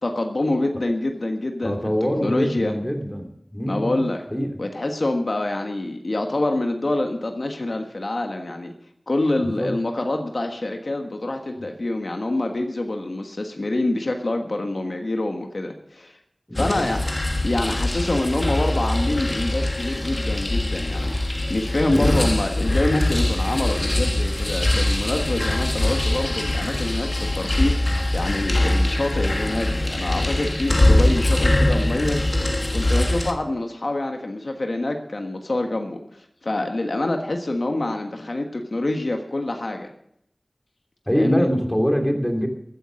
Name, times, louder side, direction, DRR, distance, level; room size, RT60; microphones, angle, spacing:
voice 1, 0.0-2.7 3.7-4.2 4.6-8.7 9.1-16.2 16.6-17.0 17.4-21.1 21.5-32.2 32.7-36.0 36.4-39.9 41.1-41.5, left 2 dB, 85° left, 4 dB, 1.4 m, -26 dB
voice 2, 1.6-4.0 4.3-4.6 9.4-9.7 16.5-16.9 21.9-22.3 41.1-42.5, equal, 15° left, 3 dB, 2.9 m, -24 dB
sound 1, 16.6-33.3, left 1 dB, 55° left, 1.6 m, -22 dB
15.0 x 10.0 x 6.4 m, 0.73 s
wide cardioid pair, 45°, 0 cm